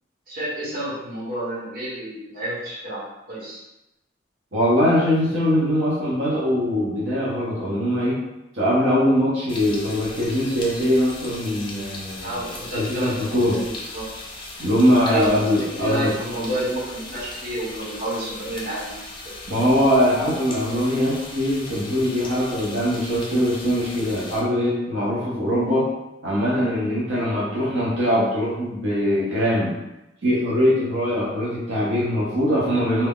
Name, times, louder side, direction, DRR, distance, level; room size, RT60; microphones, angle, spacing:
voice 1, 0.3-3.0 3.3-3.6 12.2-14.0 15.0-15.3 15.7-19.3, right 1 dB, 50° right, -8 dB, 1.3 m, -30 dB
voice 2, 4.5-8.2 8.5-12.3 12.7-13.6 14.6-16.1 19.5-25.9 26.2-29.8 30.2-33.1, equal, 90° right, -7 dB, 0.8 m, -22 dB
sound 1, 9.5-24.4, left 2 dB, 25° left, 0.5 m, -38 dB
2.7 x 2.3 x 3.5 m, 0.94 s
head